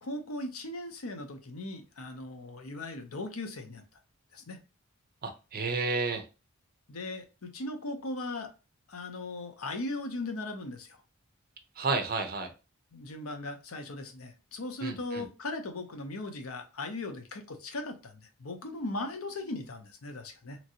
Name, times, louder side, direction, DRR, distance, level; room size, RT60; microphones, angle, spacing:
voice 1, 0.0-3.8 4.3-4.6 6.9-8.5 8.9-11.0 12.9-20.6, left 2 dB, 75° left, 0.7 m, -38 dB
voice 2, 5.2-6.2 11.8-12.5 14.8-15.3, right 3 dB, 40° right, 0.6 m, -31 dB
2.9 x 2.6 x 2.7 m
head